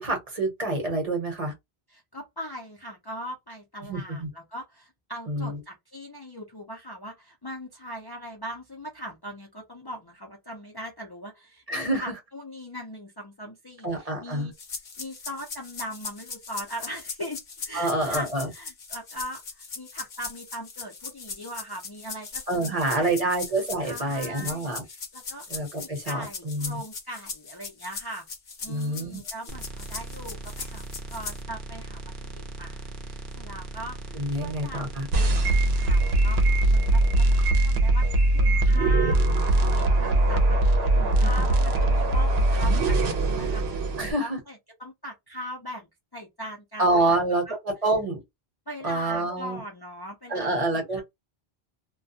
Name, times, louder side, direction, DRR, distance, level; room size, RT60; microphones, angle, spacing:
voice 1, 0.0-1.5 3.9-4.3 5.3-5.5 11.7-12.1 13.8-14.5 17.7-18.5 22.5-24.8 25.5-26.8 28.7-29.2 34.1-35.1 41.2-41.3 44.0-44.4 46.8-48.2 48.8-49.6 50.3-51.0, right 2 dB, 40° right, 1.0 m, -27 dB
voice 2, 1.9-14.5 15.0-23.3 23.8-25.4 25.8-28.3 28.6-47.6 48.7-51.0, equal, 30° left, 0.5 m, -40 dB
sound 1, 14.6-31.4, left 5 dB, 50° left, 0.8 m, -39 dB
sound 2, 29.5-37.5, right 2 dB, 60° right, 0.7 m, -39 dB
sound 3, 35.1-44.1, right 2 dB, 80° right, 0.8 m, -21 dB
2.3 x 2.2 x 2.6 m
omnidirectional pair, 1.0 m